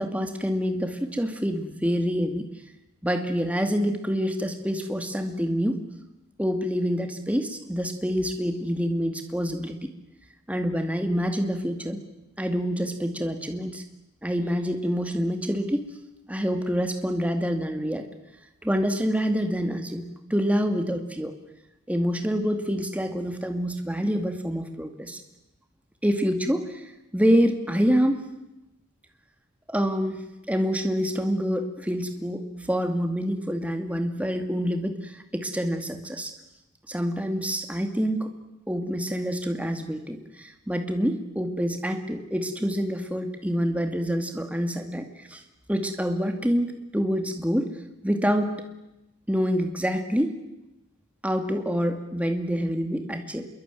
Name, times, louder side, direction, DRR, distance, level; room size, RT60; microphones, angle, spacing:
voice 1, 0.0-2.5 3.0-5.8 6.4-9.9 10.5-12.0 12.4-13.8 14.2-15.9 16.3-18.1 18.6-21.3 21.9-25.2 26.0-26.9 27.1-28.2 29.7-30.2 30.5-36.3 36.9-38.3 38.7-45.4 45.7-47.7 48.0-48.5 49.3-50.4 51.2-53.4, equal, 5° right, 6 dB, 2.4 m, -26 dB
27.0 x 23.0 x 9.3 m, 0.94 s
head